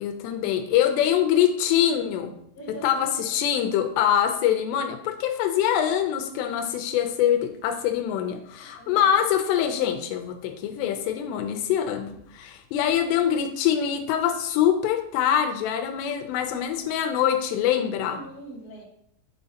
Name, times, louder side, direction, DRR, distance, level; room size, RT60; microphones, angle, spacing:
voice 1, 0.0-2.3 2.8-18.2, left 9 dB, 85° left, 6 dB, 2.8 m, -24 dB
voice 2, 2.5-3.2 8.8-9.2 18.1-18.8, right 3 dB, 15° left, -6 dB, 2.0 m, -41 dB
8.8 x 5.6 x 2.8 m, 0.72 s
omnidirectional pair, 4.9 m